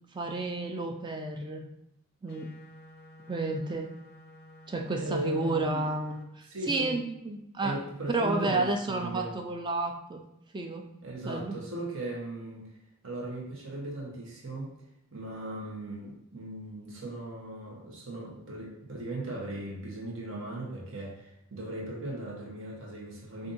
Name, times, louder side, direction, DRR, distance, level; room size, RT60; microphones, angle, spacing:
voice 1, 0.1-1.6 2.2-2.5 3.3-3.9 4.7-7.8 8.1-10.2 10.5-10.9 11.2-11.6, right 2 dB, 20° right, 4 dB, 0.3 m, -31 dB
sound 1, 2.3-6.2, left 1 dB, 45° left, 0.5 m, -52 dB
voice 2, 5.0-5.8 6.5-7.0 7.6-9.3 11.0-12.7 13.0-14.7 15.1-23.5, right 1 dB, 60° right, -2 dB, 0.9 m, -37 dB
5.1 x 2.6 x 2.6 m, 0.81 s
head